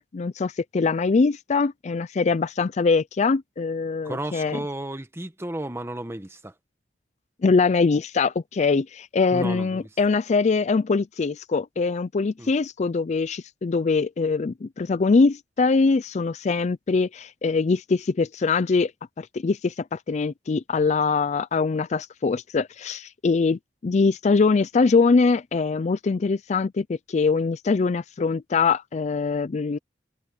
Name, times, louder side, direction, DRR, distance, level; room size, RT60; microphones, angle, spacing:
voice 1, 0.0-4.6 7.4-18.9 19.2-29.8, left 4 dB, 40° left, 0.4 m, -23 dB
voice 2, 4.0-6.5 9.3-9.9 12.4-12.5, right 1 dB, 15° right, 1.3 m, -33 dB
head